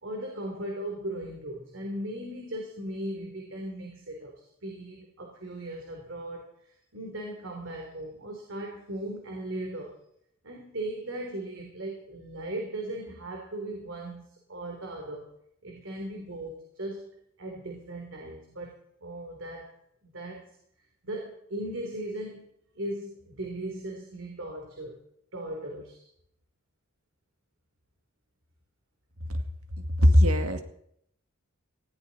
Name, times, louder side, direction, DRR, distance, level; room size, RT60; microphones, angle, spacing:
voice 1, 0.0-4.3 4.6-10.0 10.4-15.3 15.6-17.1 17.4-18.7 19.0-19.7 20.0-20.5 21.0-22.5 22.7-25.0 25.3-25.9, right 1 dB, 60° right, 1 dB, 3.3 m, -38 dB
voice 2, 29.8-30.6, equal, 85° right, 6 dB, 2.2 m, -20 dB
19.5 x 16.5 x 4.1 m, 0.70 s
head